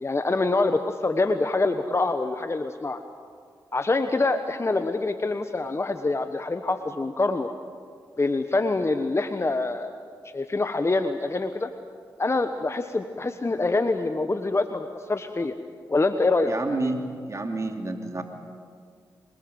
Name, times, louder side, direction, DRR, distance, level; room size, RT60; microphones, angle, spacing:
voice 1, 0.0-3.0 3.7-7.5 8.2-9.9 10.3-11.7 12.2-15.5 15.9-16.9, left 3 dB, 35° left, 8 dB, 1.2 m, -25 dB
voice 2, 16.5-18.2, right 2 dB, 40° right, 4 dB, 2.8 m, -29 dB
24.5 x 20.0 x 8.0 m, 2.1 s
supercardioid pair, 40°, 8 cm